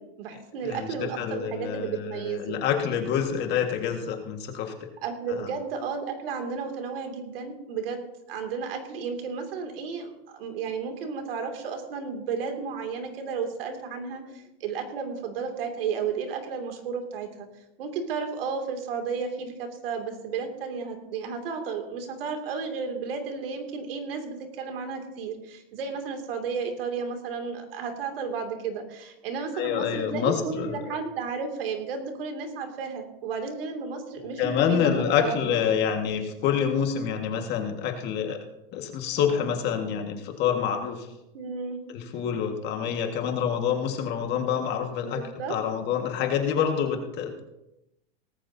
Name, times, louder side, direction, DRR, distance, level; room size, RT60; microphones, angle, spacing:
voice 1, 0.0-2.6 5.0-8.0 8.3-17.5 17.8-35.6 41.3-41.8 45.0-45.6, right 5 dB, 75° right, 5 dB, 2.6 m, -33 dB
voice 2, 0.6-4.7 5.3-5.4 29.5-30.8 34.4-38.4 38.7-41.1 41.9-45.2 45.5-47.4, left 8 dB, 35° left, 4 dB, 1.7 m, -27 dB
18.5 x 14.0 x 2.8 m, 0.91 s
supercardioid pair, 145°, 29 cm